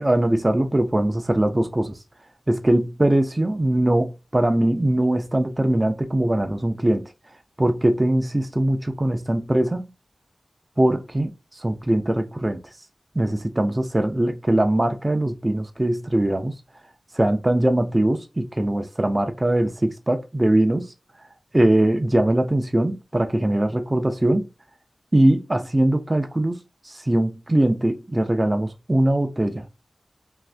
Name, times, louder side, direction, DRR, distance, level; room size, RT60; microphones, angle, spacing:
voice 1, 0.0-2.0 2.5-7.1 7.6-9.9 10.8-11.3 11.6-12.6 13.2-16.5 17.1-20.9 21.5-24.5 25.1-26.6 26.9-29.6, right 1 dB, 25° right, 0.4 m, -21 dB
2.6 x 2.5 x 3.3 m
wide cardioid pair, 80°, 0 cm